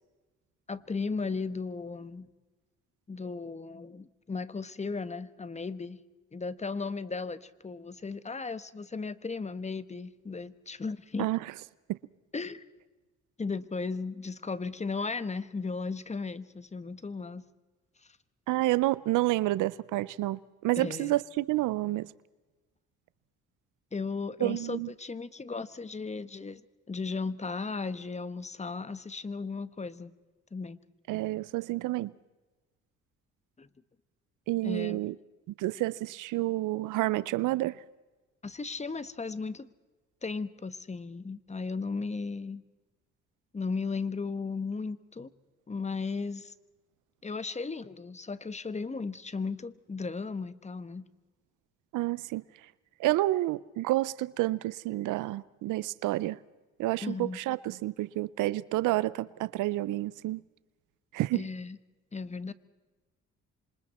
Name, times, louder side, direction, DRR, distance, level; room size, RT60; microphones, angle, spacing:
voice 1, 0.7-2.3 3.1-6.0 6.3-11.3 12.3-12.6 13.4-17.4 20.8-21.2 23.9-26.6 26.9-30.1 30.5-30.8 33.6-33.7 34.6-35.0 38.4-39.7 40.2-42.6 43.5-45.3 45.7-46.5 47.2-51.0 57.0-57.4 61.3-61.8 62.1-62.5, left 4 dB, 25° left, 1.2 m, -36 dB
voice 2, 18.5-22.1 24.4-24.9 31.1-32.1 34.5-35.1 35.6-37.8 51.9-52.4 53.0-56.4 56.8-60.4 61.1-61.5, right 17 dB, 90° right, 0.6 m, -29 dB
27.5 x 26.0 x 4.3 m
cardioid pair, 90°, 30 cm